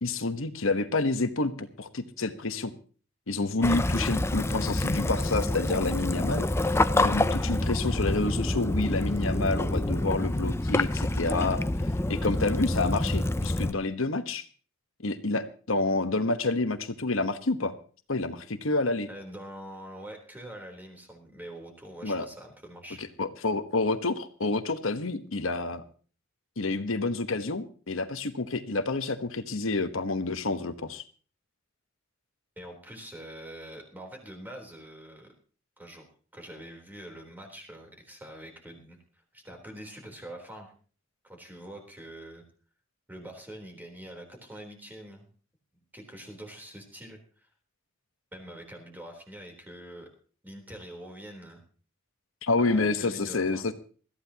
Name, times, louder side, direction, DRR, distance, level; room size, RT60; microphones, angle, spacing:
voice 1, 0.0-2.7 3.3-6.5 6.9-11.6 12.1-14.4 15.0-17.7 18.1-19.1 22.0-22.3 23.2-25.8 26.6-31.0 52.4-53.7, left 3 dB, 75° left, 9 dB, 1.2 m, -28 dB
Waves surf / Splash splatter / Trickle dribble, 3.6-13.7, left 1 dB, 15° left, 0.5 m, -27 dB
voice 2, 19.1-23.1 32.6-35.3 35.8-36.1 36.3-40.7 41.2-42.4 43.1-45.3 45.9-47.5 48.3-50.1 50.4-51.6 52.6-53.7, right 1 dB, 10° right, 2 dB, 3.7 m, -44 dB
21.0 x 14.5 x 2.9 m, 0.40 s
head